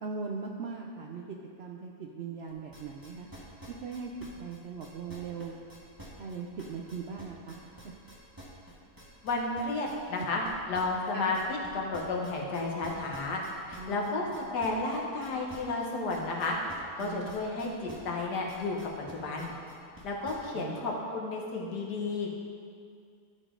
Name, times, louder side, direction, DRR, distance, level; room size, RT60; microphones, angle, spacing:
voice 1, 0.0-3.3 3.8-4.1 4.4-5.5 6.2-7.6 11.1-11.3 13.8-14.3 17.0-17.6 20.5-21.0, right 5 dB, 85° right, 0 dB, 0.5 m, -40 dB
sound 1, 2.5-20.6, right 1 dB, 15° right, 1.4 m, -49 dB
voice 2, 9.2-13.4 13.7-16.6 17.0-18.8 19.1-19.5 20.0-22.3, left 3 dB, 85° left, -1 dB, 1.8 m, -32 dB
13.0 x 5.1 x 3.7 m, 2.3 s
omnidirectional pair, 1.7 m